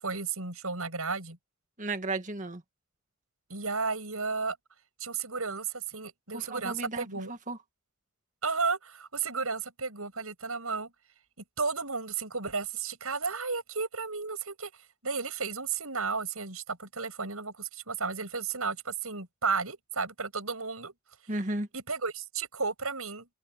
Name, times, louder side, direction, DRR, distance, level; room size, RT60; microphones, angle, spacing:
voice 1, 0.0-1.4 3.5-4.6 5.0-7.3 8.4-10.9 11.6-14.7 15.0-20.9 21.7-23.3, right 4 dB, 70° right, 7.6 m, -33 dB
voice 2, 1.8-2.6 6.3-7.6 21.3-21.7, right 2 dB, 35° right, 1.8 m, -34 dB
head